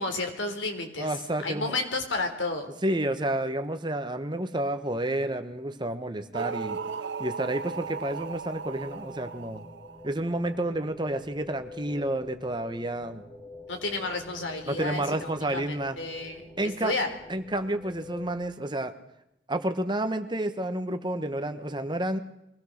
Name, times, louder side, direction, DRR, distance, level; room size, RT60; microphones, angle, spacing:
voice 1, 0.0-1.1 1.4-2.7 13.7-17.1, left 3 dB, 80° left, 5 dB, 3.6 m, -32 dB
voice 2, 1.0-1.8 2.8-6.8 7.2-9.6 10.0-13.2 14.7-16.0 16.6-16.9 17.3-18.9 19.5-22.2, right 1 dB, 25° right, 8 dB, 1.2 m, -30 dB
sound 1, 6.3-10.6, right 5 dB, 65° right, 0.8 m, -37 dB
sound 2, 7.4-18.4, left 2 dB, 20° left, 4.5 m, -47 dB
24.0 x 17.5 x 6.6 m, 0.82 s
head